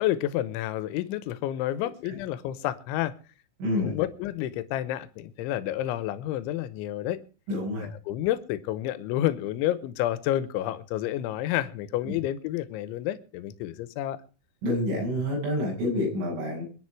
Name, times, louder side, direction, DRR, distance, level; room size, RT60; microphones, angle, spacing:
voice 1, 0.0-3.1 3.7-7.2 7.8-14.2, left 13 dB, 85° left, 16 dB, 3.3 m, -30 dB
voice 2, 3.6-4.0 7.5-7.9 14.6-16.7, left 1 dB, 85° right, -3 dB, 9.2 m, -28 dB
22.5 x 10.5 x 4.8 m, 0.37 s
omnidirectional pair, 5.4 m